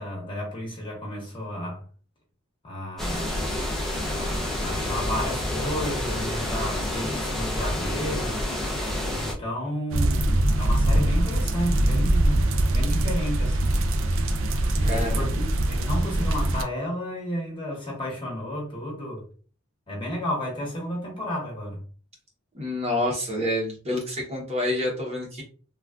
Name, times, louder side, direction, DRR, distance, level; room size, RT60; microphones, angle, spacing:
voice 1, 0.0-1.8 2.6-3.4 4.0-8.5 9.1-13.8 14.7-19.2 19.9-21.8, equal, 25° left, 1.0 m, -32 dB
sound 1, 3.0-9.3, left 1 dB, ahead, 0.5 m, -28 dB
sound 2, 9.9-16.6, right 1 dB, 65° right, 0.4 m, -23 dB
voice 2, 14.8-15.5 22.5-25.4, left 1 dB, 30° right, 0.8 m, -28 dB
3.5 x 2.3 x 2.3 m
head